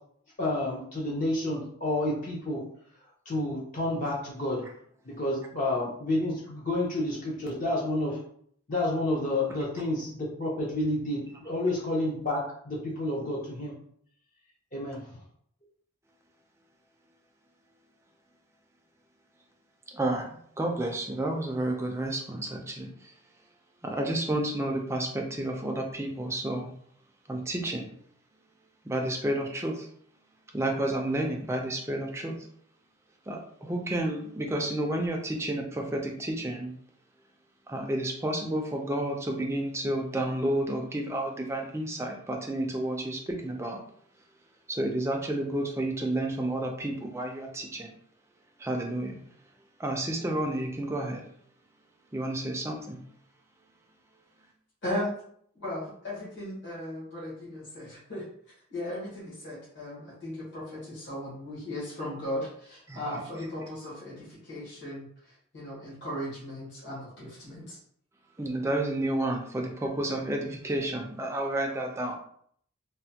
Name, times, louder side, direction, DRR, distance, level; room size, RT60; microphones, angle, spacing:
voice 1, 0.4-2.6 3.3-4.6 5.1-8.2 8.7-13.7 14.7-15.0, left 1 dB, 35° left, -5 dB, 0.6 m, -30 dB
voice 2, 19.9-22.9 23.8-26.7 27.3-27.9 28.9-29.9 30.5-32.4 33.3-36.7 37.7-43.8 44.7-47.9 48.6-49.2 49.8-51.2 52.1-53.0 62.9-63.0 68.4-72.2, right 1 dB, 10° right, 2 dB, 0.4 m, -31 dB
voice 3, 54.8-55.1 55.5-58.2 58.7-67.8, left 1 dB, 55° left, -8 dB, 1.3 m, -37 dB
3.2 x 2.1 x 2.8 m, 0.64 s
head